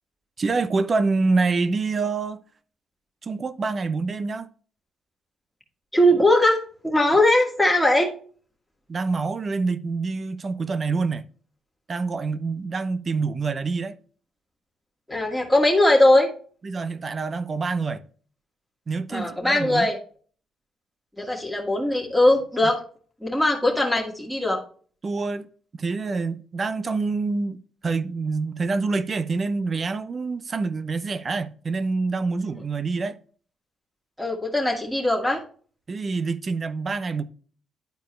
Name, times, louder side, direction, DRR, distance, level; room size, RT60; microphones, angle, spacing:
voice 1, 0.4-2.4 3.2-4.5 8.9-11.2 11.9-14.0 16.6-18.0 18.9-19.9 25.0-25.5 25.7-33.2 35.9-37.2, right 4 dB, 40° right, 0.6 m, -26 dB
voice 2, 5.9-8.1 15.1-16.3 19.1-20.0 21.2-22.8 23.2-24.6 34.2-35.4, left 1 dB, ahead, 2.1 m, -20 dB
10.5 x 4.4 x 3.2 m
cardioid pair, 90°, 0 cm